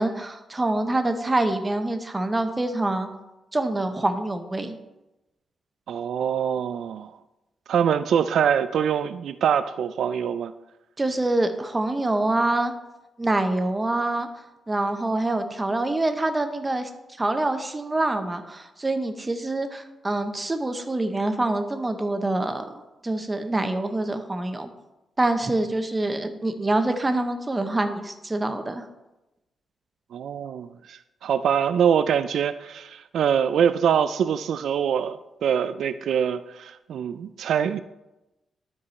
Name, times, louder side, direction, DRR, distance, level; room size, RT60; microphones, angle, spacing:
voice 1, 0.0-3.1 3.5-4.8 11.0-12.7 13.2-14.3 14.7-16.9 17.2-22.7 23.0-24.7 25.2-28.8, right 2 dB, 15° right, 0.8 m, -25 dB
voice 2, 5.9-7.1 7.7-10.5 30.1-37.8, right 8 dB, 80° right, 0.3 m, -24 dB
12.0 x 4.8 x 4.2 m
cardioid pair, 125°, 0 cm